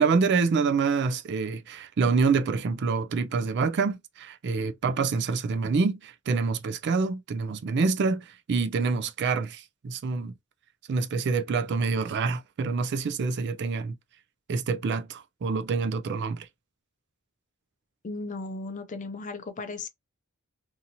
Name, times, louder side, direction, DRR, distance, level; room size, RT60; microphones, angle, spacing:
voice 1, 0.0-10.3 10.9-13.9 14.5-16.5, right 4 dB, 50° right, 0.4 m, -26 dB
voice 2, 18.0-19.9, left 3 dB, 35° left, 0.5 m, -36 dB
2.8 x 2.6 x 2.6 m
head